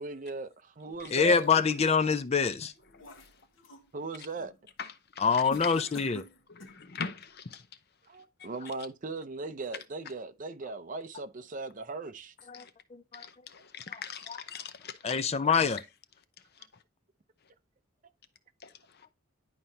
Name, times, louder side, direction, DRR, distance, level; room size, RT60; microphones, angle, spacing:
voice 1, 0.0-1.5 3.9-4.5 8.1-12.3, right 3 dB, 40° right, 0.6 m, -38 dB
sound 1, 0.9-2.1 2.6-3.9 4.3-4.6 5.5-6.9, equal, 80° left, 1.3 m, -48 dB
voice 2, 1.1-2.7 5.2-6.2 12.5-12.7 12.9-13.2 15.0-15.8, left 5 dB, 30° left, 0.4 m, -25 dB
voice 3, 4.8-6.0 6.5-7.7 8.4-8.5 12.5-12.7 13.1-15.2 16.5-16.7 18.6-19.1, left 6 dB, 55° left, 0.8 m, -42 dB
11.0 x 4.4 x 2.7 m
head